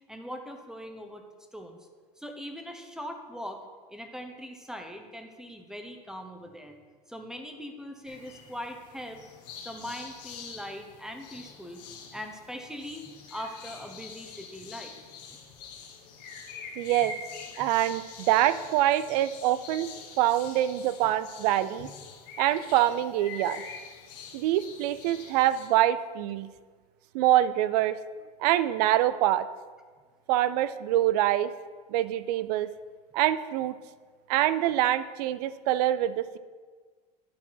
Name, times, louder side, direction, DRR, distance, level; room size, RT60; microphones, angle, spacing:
voice 1, 0.1-1.2 1.5-1.8 2.2-3.6 3.9-6.8 7.1-9.2 9.6-11.8 12.1-14.9 17.6-17.7, equal, 5° right, 5 dB, 1.0 m, -41 dB
sound 1, 8.1-25.7, left 5 dB, 70° left, 1.3 m, -45 dB
voice 2, 16.8-17.1 17.6-19.9 20.2-21.9 22.4-23.6 24.3-26.5 27.1-28.0 28.4-29.5 30.3-31.5 31.9-32.7 33.1-33.7 34.3-36.4, right 13 dB, 70° right, 15 dB, 0.5 m, -25 dB
10.5 x 4.4 x 5.8 m, 1.5 s
hypercardioid pair, 95°, 21 cm